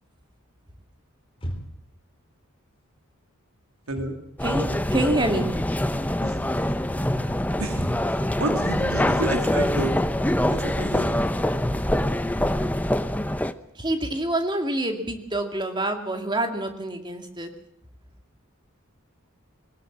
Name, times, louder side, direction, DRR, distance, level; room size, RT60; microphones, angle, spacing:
sound 1, 1.3-2.0 3.7-4.2 4.5-5.5 5.8-6.2 6.8-8.3, equal, 25° left, 3.7 m, -36 dB
voice 1, 3.9-4.2 6.2-6.5 7.6-7.9 8.4-10.0 10.5-11.3, right 2 dB, 80° right, 5 dB, 2.6 m, -30 dB
sound 2, 4.4-13.5, left 1 dB, 5° left, 0.7 m, -24 dB
voice 2, 4.4-5.5 13.8-17.5, right 1 dB, 20° right, 5 dB, 2.4 m, -26 dB
20.5 x 19.0 x 7.4 m, 0.73 s
head